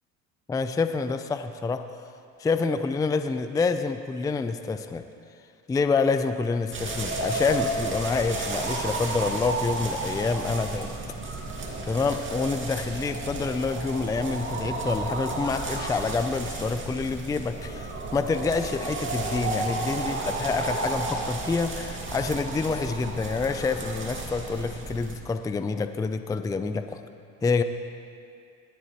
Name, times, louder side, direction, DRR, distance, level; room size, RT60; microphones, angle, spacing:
voice 1, 0.5-1.9 2.4-5.0 5.7-10.9 11.9-27.0 27.4-27.6, left 4 dB, 10° left, 9 dB, 0.4 m, -27 dB
sound 1, 6.7-25.2, right 2 dB, 30° right, 2.2 m, -32 dB
19.0 x 12.5 x 3.0 m, 2.4 s
supercardioid pair, 90°, 41 cm